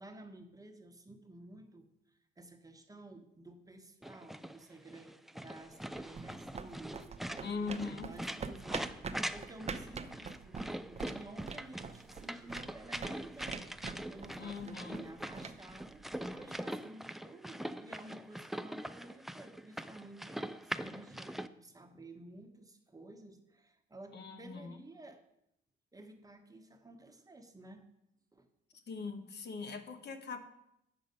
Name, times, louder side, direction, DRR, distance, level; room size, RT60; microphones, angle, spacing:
voice 1, 0.0-16.1 16.3-25.2 25.9-27.9 28.3-28.5, right 2 dB, 15° right, 5 dB, 1.1 m, -53 dB
sound 1, 4.0-21.5, right 1 dB, ahead, 0.4 m, -43 dB
sound 2, 5.7-16.5, right 5 dB, 30° right, 0.7 m, -46 dB
voice 2, 7.4-8.1 14.4-15.0 24.1-24.8 28.7-30.4, left 4 dB, 60° left, 7 dB, 1.1 m, -41 dB
8.7 x 6.6 x 5.2 m, 0.80 s
cardioid pair, 90°, 20 cm